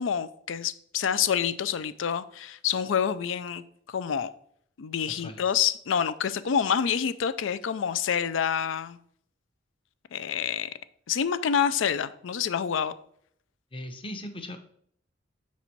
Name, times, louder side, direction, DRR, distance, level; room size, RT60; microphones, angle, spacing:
voice 1, 0.0-4.3 4.8-9.0 10.1-10.7 11.1-12.9, left 8 dB, 80° left, 0.4 m, -27 dB
voice 2, 5.1-5.5 13.7-14.6, left 1 dB, 30° left, 0.8 m, -39 dB
6.0 x 4.2 x 4.4 m
head